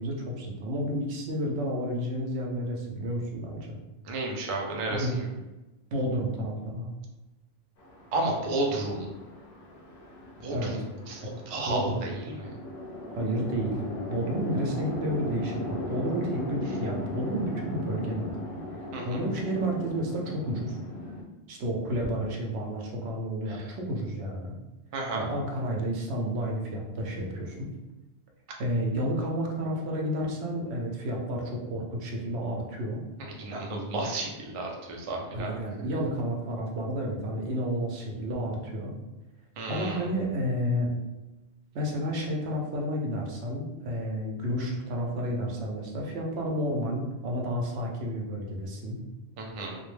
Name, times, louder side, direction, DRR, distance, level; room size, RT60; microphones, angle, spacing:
voice 1, 0.0-3.8 4.9-5.2 5.9-6.9 10.5-10.7 11.7-12.0 13.1-13.8 14.1-18.3 19.0-20.8 21.5-24.6 25.1-27.7 28.6-33.0 35.3-39.0 39.7-40.9 41.7-49.0, equal, 80° right, 0 dB, 0.9 m, -31 dB
voice 2, 4.0-5.3 8.1-9.1 10.4-10.8 11.1-12.5 18.9-19.2 23.5-23.7 24.9-25.3 33.2-35.5 39.6-40.0 49.4-49.8, right 2 dB, 50° right, -1 dB, 0.4 m, -32 dB
Chatter / Traffic noise roadway noise / Train, 7.8-21.2, left 1 dB, 50° left, 0.4 m, -38 dB
2.2 x 2.1 x 3.1 m, 1.1 s
omnidirectional pair, 1.1 m